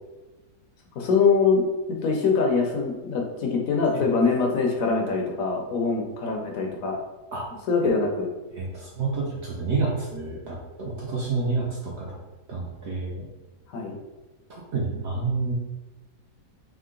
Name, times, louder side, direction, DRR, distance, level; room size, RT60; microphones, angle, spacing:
voice 1, 1.0-1.7 2.0-7.0 7.7-8.3 13.7-14.0, left 4 dB, 65° left, 1 dB, 1.0 m, -23 dB
voice 2, 8.5-12.2 12.5-13.2 14.5-15.5, right 4 dB, 60° right, -3 dB, 0.7 m, -29 dB
3.7 x 3.0 x 3.7 m, 1.1 s
omnidirectional pair, 1.7 m